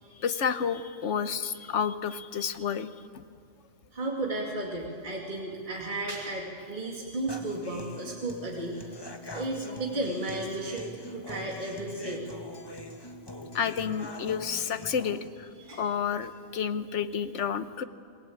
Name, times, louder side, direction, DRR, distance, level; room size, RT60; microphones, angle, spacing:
voice 1, 0.2-2.9 13.5-17.8, left 7 dB, 75° left, 12 dB, 1.3 m, -30 dB
voice 2, 3.9-8.8 9.3-12.3 15.6-15.8, right 2 dB, 40° right, -1 dB, 2.6 m, -34 dB
Human voice / Acoustic guitar, 7.3-15.3, left 1 dB, 20° left, 1.5 m, -43 dB
27.5 x 19.5 x 8.6 m, 2.1 s
omnidirectional pair, 1.2 m